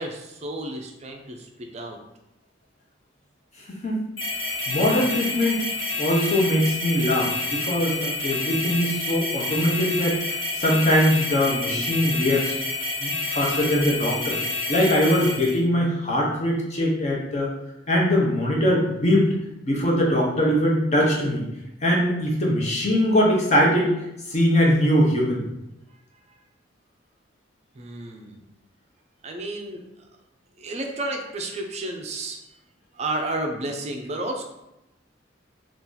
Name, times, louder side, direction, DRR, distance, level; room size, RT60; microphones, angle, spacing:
voice 1, 0.0-2.0 27.8-28.4 29.2-29.8 30.6-32.4 33.0-34.4, right 2 dB, 35° right, 3 dB, 0.4 m, -31 dB
sound 1, 4.2-15.6, left 2 dB, 75° left, 1.2 m, -28 dB
voice 2, 4.7-5.7 6.0-12.6 13.0-14.4 14.7-17.5 17.9-19.3 19.6-21.4 21.8-23.9 24.3-25.4, equal, 35° left, -2 dB, 0.8 m, -22 dB
2.8 x 2.4 x 3.7 m, 0.91 s
head